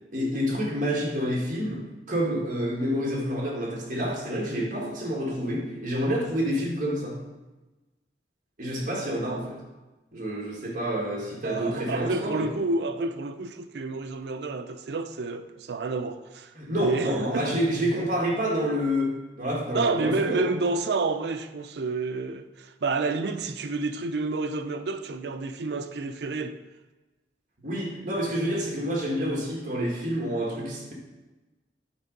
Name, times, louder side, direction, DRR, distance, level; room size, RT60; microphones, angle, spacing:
voice 1, 0.1-7.2 8.6-9.6 10.1-12.5 16.6-20.5 27.6-30.9, equal, 50° right, 1.7 m, -28 dB
voice 2, 11.4-16.5 16.8-17.6 19.7-26.6, right 3 dB, 65° right, 0.5 m, -29 dB
8.1 x 3.7 x 5.2 m
head